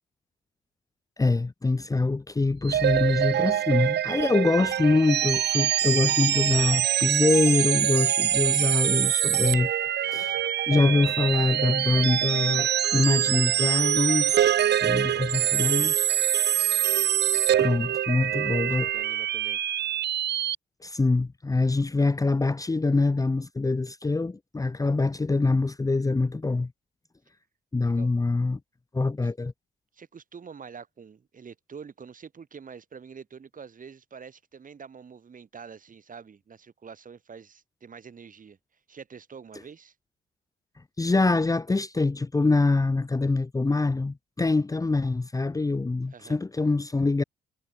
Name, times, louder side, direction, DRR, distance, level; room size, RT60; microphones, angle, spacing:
voice 1, 1.2-9.7 10.0-15.9 17.6-18.9 20.8-26.7 27.7-28.6 28.9-29.5 41.0-47.2, left 3 dB, 15° left, 1.1 m, -24 dB
sound 1, 2.7-20.5, right 11 dB, 60° right, 0.8 m, -25 dB
voice 2, 14.9-16.1 17.9-19.6 27.8-28.1 29.2-29.3 29.9-38.6 38.9-39.9 46.1-46.4, right 6 dB, 40° right, 4.8 m, -46 dB
cardioid pair, 90°, 20 cm